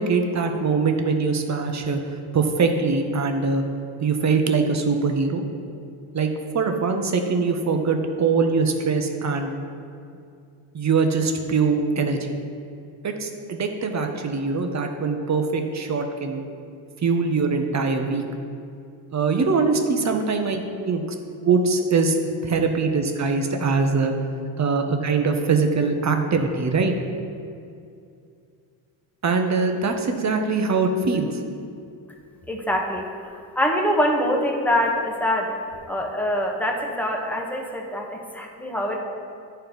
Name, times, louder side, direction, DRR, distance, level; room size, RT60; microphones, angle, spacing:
voice 1, 0.0-2.0 2.3-3.6 4.0-5.4 6.1-6.3 6.5-9.5 10.7-12.3 13.0-16.4 17.0-18.2 19.1-21.0 21.4-22.2 22.4-24.1 24.6-26.9 29.2-31.4, right 4 dB, 35° right, 5 dB, 1.0 m, -22 dB
voice 2, 32.5-33.3 33.5-35.5 35.9-39.0, equal, 5° left, 0 dB, 1.3 m, -24 dB
10.0 x 4.5 x 5.3 m, 2.4 s
supercardioid pair, 75°, 49 cm